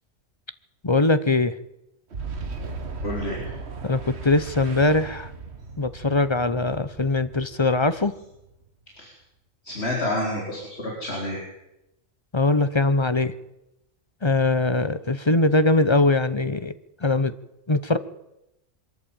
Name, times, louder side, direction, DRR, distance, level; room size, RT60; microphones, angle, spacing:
voice 1, 0.8-1.6 3.8-5.3 5.8-8.1 12.3-13.3 14.2-16.7 17.0-17.3 17.7-18.0, left 2 dB, 25° left, 13 dB, 0.8 m, -21 dB
Boom, 2.1-8.7, right 4 dB, 55° right, 1.9 m, -37 dB
voice 2, 3.0-3.5 8.9-9.1 9.6-11.4, left 1 dB, 55° left, -2 dB, 4.4 m, -29 dB
23.0 x 13.5 x 8.9 m, 0.89 s
omnidirectional pair, 1.3 m